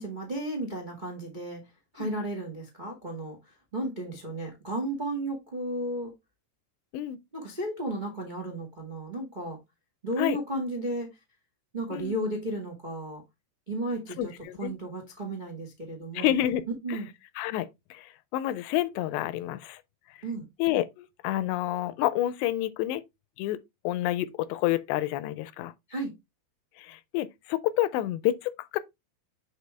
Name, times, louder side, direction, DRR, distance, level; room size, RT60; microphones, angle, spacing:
voice 1, 0.0-1.6 1.9-3.4 3.7-6.1 7.3-9.6 10.0-11.1 11.7-13.2 13.7-14.3 14.6-16.3 16.8-17.1 20.2-20.5 25.9-26.1, right 1 dB, 65° right, 0.4 m, -33 dB
voice 2, 14.2-14.7 16.1-16.6 16.9-17.0 17.4-19.8 20.1-20.2 20.6-23.0 23.4-23.6 23.8-25.7 26.8-28.8, left 14 dB, 85° left, 2.8 m, -29 dB
8.2 x 4.4 x 3.3 m
omnidirectional pair, 5.0 m